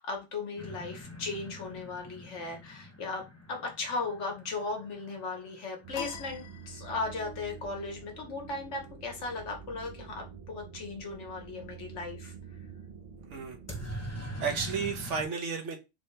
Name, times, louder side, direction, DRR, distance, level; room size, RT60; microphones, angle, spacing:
voice 1, 0.0-12.3, left 3 dB, 65° left, 2 dB, 1.3 m, -37 dB
sound 1, 0.6-6.3 13.7-15.2, equal, 15° left, 0.6 m, -43 dB
sound 2, 5.8-15.1, right 6 dB, 50° right, 0.4 m, -47 dB
sound 3, 5.9-7.3, left 7 dB, 80° left, 1.1 m, -43 dB
voice 2, 13.8-15.8, right 5 dB, 70° right, 4 dB, 1.1 m, -33 dB
3.7 x 2.8 x 3.2 m, 0.26 s
omnidirectional pair, 1.3 m